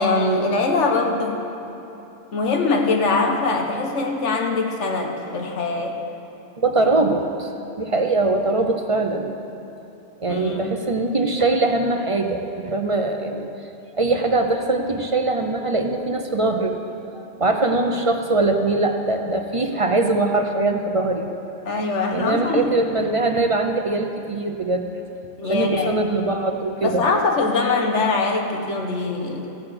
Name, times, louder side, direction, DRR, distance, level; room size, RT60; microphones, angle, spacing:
voice 1, 0.0-1.4 2.3-6.0 10.3-10.9 21.6-22.7 25.4-26.0 26.8-29.5, left 3 dB, 85° left, 3 dB, 1.5 m, -22 dB
voice 2, 6.6-7.5 7.8-9.3 10.2-13.5 14.0-16.7 17.1-21.3 22.1-24.9 25.4-27.0, right 2 dB, 35° right, 4 dB, 0.6 m, -22 dB
15.0 x 6.7 x 7.8 m, 2.9 s
omnidirectional pair, 1.2 m